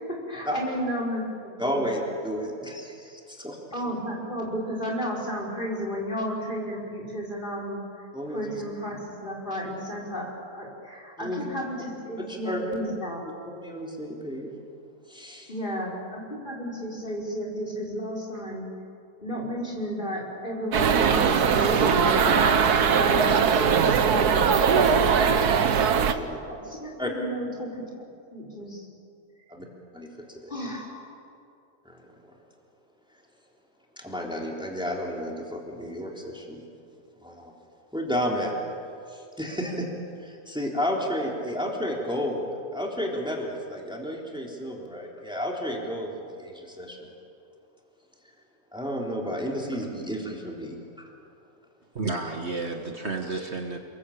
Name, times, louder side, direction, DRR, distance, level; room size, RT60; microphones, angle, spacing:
voice 1, 0.1-1.9 3.7-13.2 15.5-18.7 19.2-22.6 22.8-25.4 26.1-26.2 26.5-27.7 28.0-28.8 30.5-31.1, equal, 30° left, -2 dB, 5.9 m, -33 dB
voice 2, 1.6-3.6 8.1-8.6 11.2-11.5 12.2-12.6 13.5-14.5 15.1-15.5 25.3-25.4 26.1-26.4 27.0-27.1 29.6-29.7 29.9-30.5 31.9-32.0 34.0-36.6 37.2-37.5 37.9-38.5 39.1-39.9 40.2-47.1 48.7-51.1, equal, 5° right, -1 dB, 3.5 m, -32 dB
sound 1, 20.7-26.1, right 6 dB, 80° right, 1.7 m, -20 dB
voice 3, 52.0-53.8, right 3 dB, 45° right, 2 dB, 1.9 m, -31 dB
30.0 x 21.5 x 8.7 m, 2.5 s
omnidirectional pair, 1.6 m